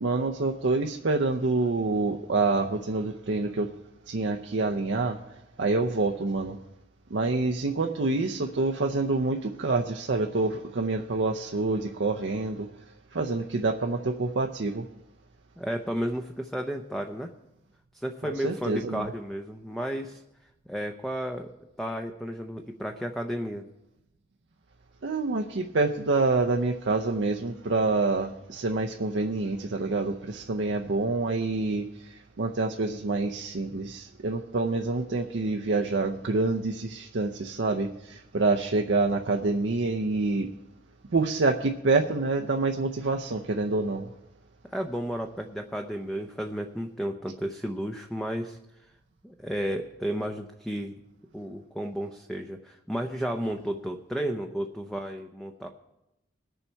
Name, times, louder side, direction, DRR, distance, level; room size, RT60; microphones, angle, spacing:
voice 1, 0.0-3.7 4.1-5.2 5.6-6.6 7.1-12.7 13.1-14.9 18.4-19.1 25.0-40.5 41.1-44.1, right 3 dB, 70° right, 0.6 m, -27 dB
voice 2, 15.6-17.3 17.9-20.2 20.7-21.5 21.8-23.6 44.7-48.6 49.2-50.9 51.3-55.7, equal, ahead, 0.5 m, -32 dB
20.5 x 7.1 x 4.5 m
head